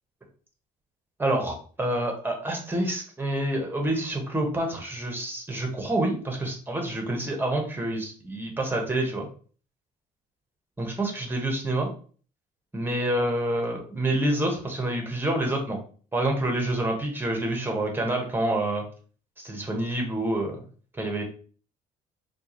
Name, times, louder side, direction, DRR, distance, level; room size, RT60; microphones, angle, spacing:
voice 1, 1.2-9.3 10.8-11.9 12.7-15.8 16.1-18.8 19.4-20.6 21.0-21.2, right 1 dB, 10° right, 2 dB, 1.2 m, -27 dB
4.4 x 2.4 x 3.0 m, 0.41 s
cardioid pair, 110°, 17 cm